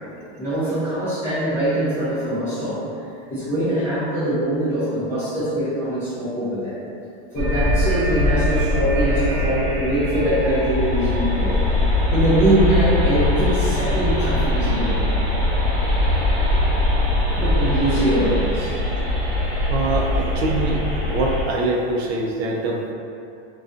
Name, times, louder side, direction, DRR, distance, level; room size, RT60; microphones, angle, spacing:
voice 1, 0.4-2.8 3.3-6.7 7.3-11.6 12.1-15.1 17.4-18.7, right 1 dB, 10° left, -15 dB, 0.5 m, -22 dB
sound 1, 7.3-21.4, left 1 dB, 40° right, 0.8 m, -21 dB
voice 2, 19.7-20.8 21.1-22.9, right 2 dB, 70° right, -1 dB, 0.5 m, -24 dB
2.4 x 2.3 x 2.5 m, 2.6 s
supercardioid pair, 170°, 34 cm